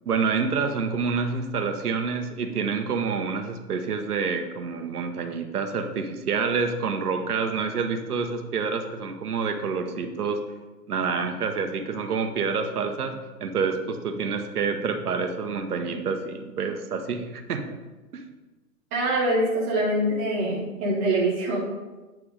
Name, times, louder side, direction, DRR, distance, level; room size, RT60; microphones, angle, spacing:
voice 1, 0.1-10.4 10.9-17.8 18.1-18.2, right 5 dB, 65° right, 6 dB, 1.0 m, -28 dB
voice 2, 18.9-21.6, right 1 dB, 10° right, -6 dB, 0.4 m, -24 dB
8.9 x 3.5 x 4.9 m, 1.2 s
figure-of-eight pair, 120°, 48 cm